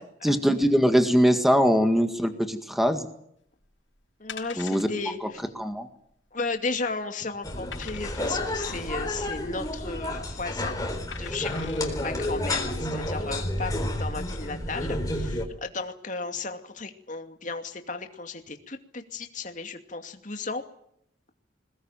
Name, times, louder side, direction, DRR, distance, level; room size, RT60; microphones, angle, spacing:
voice 1, 0.2-3.1 4.6-4.9 5.2-5.3 5.6-5.9, equal, ahead, 7 dB, 1.8 m, -22 dB
sound 1, 3.6-3.8 4.3-5.0 5.4-5.5 5.8-5.9 6.5-6.9 7.7-8.4 9.7-10.1 11.1-11.9 12.5-12.6, left 7 dB, 85° left, 5.9 m, -43 dB
voice 2, 4.2-5.4 6.3-10.8 11.2-20.6, left 3 dB, 40° left, 6 dB, 2.5 m, -35 dB
sound 2, 7.4-15.4, left 1 dB, 20° left, 3.9 m, -30 dB
22.0 x 19.0 x 9.1 m, 0.72 s
head